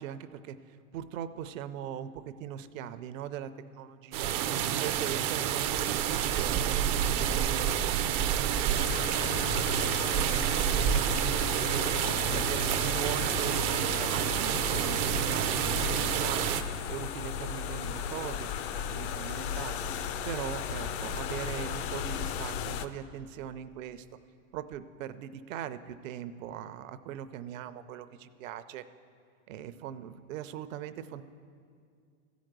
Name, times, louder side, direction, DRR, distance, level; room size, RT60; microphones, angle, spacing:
voice 1, 0.0-4.3 4.7-8.1 8.5-9.7 10.3-12.0 12.2-16.6 16.9-18.5 18.9-19.8 20.3-24.1 24.5-28.8 29.5-31.2, right 10 dB, 70° right, 12 dB, 0.7 m, -40 dB
sound 1, 4.1-16.6, right 9 dB, 30° right, 0.4 m, -28 dB
sound 2, 8.7-22.9, left 7 dB, 50° left, 0.6 m, -36 dB
13.5 x 5.1 x 7.9 m, 2.3 s
supercardioid pair, 135°, 41 cm